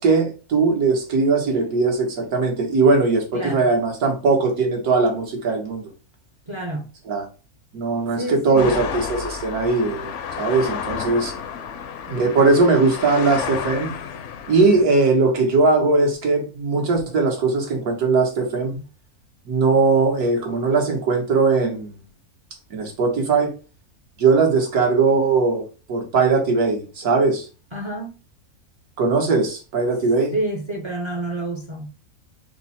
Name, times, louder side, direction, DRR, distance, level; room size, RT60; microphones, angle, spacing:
voice 1, 0.0-5.8 7.1-7.2 7.7-10.1 10.4-11.3 12.1-13.9 14.5-18.8 19.4-22.0 22.7-23.5 24.2-27.5 29.0-30.3, right 3 dB, 90° right, 1.6 m, -19 dB
voice 2, 3.3-3.7 6.5-6.9 8.2-8.8 27.7-28.2 30.3-31.9, right 2 dB, 45° right, 0.3 m, -28 dB
sound 1, 8.6-14.9, left 7 dB, 65° left, 0.8 m, -31 dB
4.3 x 2.1 x 4.2 m
omnidirectional pair, 1.5 m